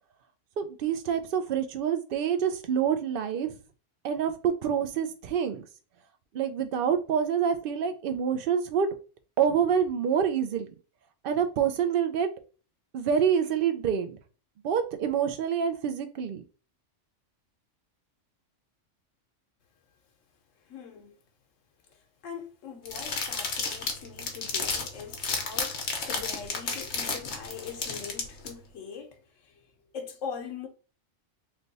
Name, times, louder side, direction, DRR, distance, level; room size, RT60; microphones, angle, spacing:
voice 1, 0.6-3.5 4.0-5.6 6.3-8.9 9.4-10.7 11.2-12.3 12.9-14.2 14.6-16.4, right 8 dB, 60° right, 0.6 m, -27 dB
voice 2, 20.7-21.2 22.2-30.7, left 6 dB, 85° left, 1.1 m, -42 dB
sound 1, 22.9-28.5, left 4 dB, 65° left, 1.1 m, -32 dB
3.3 x 2.2 x 3.9 m
omnidirectional pair, 1.3 m